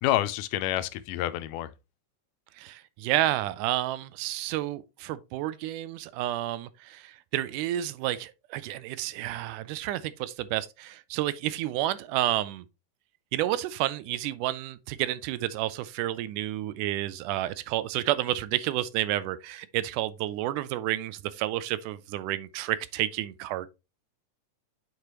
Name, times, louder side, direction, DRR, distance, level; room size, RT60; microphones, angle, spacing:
voice 1, 0.0-1.7, left 14 dB, 85° left, 2.1 m, -28 dB
voice 2, 2.6-12.7 13.3-23.7, right 14 dB, 80° right, 2.0 m, -30 dB
8.2 x 4.9 x 2.9 m
omnidirectional pair, 3.7 m